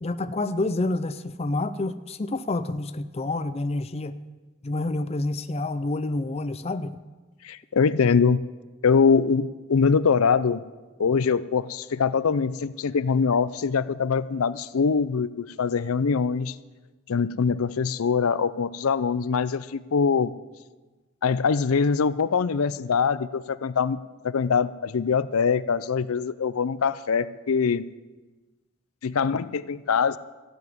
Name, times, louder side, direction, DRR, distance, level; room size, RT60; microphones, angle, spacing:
voice 1, 0.0-4.1 4.6-7.0, left 2 dB, 30° left, 12 dB, 0.5 m, -28 dB
voice 2, 7.4-8.4 8.8-10.6 11.0-16.6 17.1-20.3 21.2-24.0 24.2-27.8 29.0-30.2, left 5 dB, 85° left, 16 dB, 0.5 m, -23 dB
14.5 x 7.1 x 9.5 m, 1.2 s
head